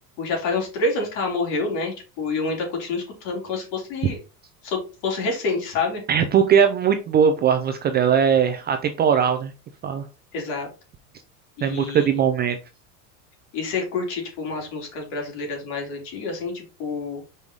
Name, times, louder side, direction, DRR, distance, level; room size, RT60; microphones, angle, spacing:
voice 1, 0.2-4.2 4.6-6.0 10.3-10.7 11.6-12.1 13.5-17.2, left 3 dB, 60° left, 0 dB, 3.4 m, -28 dB
voice 2, 6.1-9.5 9.8-10.0 11.6-12.6, right 7 dB, 20° right, 7 dB, 0.4 m, -20 dB
5.6 x 4.7 x 3.9 m, 0.32 s
supercardioid pair, 145°, 47 cm